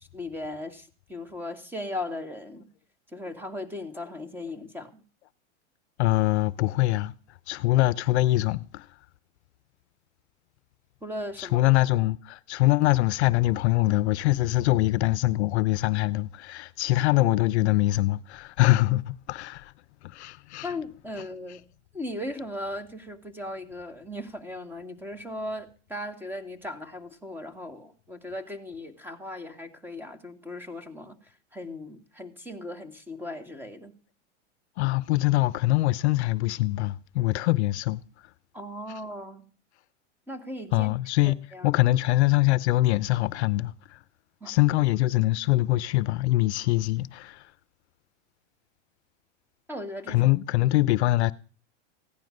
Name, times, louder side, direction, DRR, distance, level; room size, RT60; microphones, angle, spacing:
voice 1, 0.1-2.7 3.1-5.0 11.0-11.6 20.6-21.6 21.9-31.2 31.5-33.9 38.5-39.5 40.3-40.9 41.3-41.7 44.4-44.5 49.7-50.2, left 1 dB, 5° right, 2.1 m, -37 dB
voice 2, 6.0-7.1 7.5-8.9 11.4-19.7 20.0-20.7 34.8-38.0 38.9-39.0 40.7-44.0 44.5-47.5 50.1-51.3, left 18 dB, 65° left, 0.7 m, -23 dB
16.0 x 10.5 x 6.5 m
hypercardioid pair, 120°, 36 cm